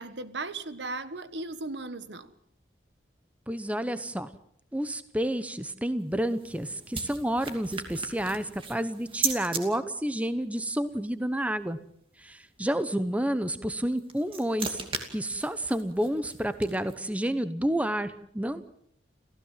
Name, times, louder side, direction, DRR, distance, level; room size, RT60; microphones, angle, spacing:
voice 1, 0.0-2.3, right 3 dB, 75° right, 12 dB, 1.5 m, -36 dB
voice 2, 3.5-4.3 4.7-11.8 12.2-14.8 15.1-18.6, right 1 dB, 10° right, 12 dB, 0.9 m, -30 dB
sound 1, 6.0-9.6 13.8-17.1, right 5 dB, 30° right, 2.7 m, -37 dB
29.5 x 15.5 x 7.5 m, 0.68 s
head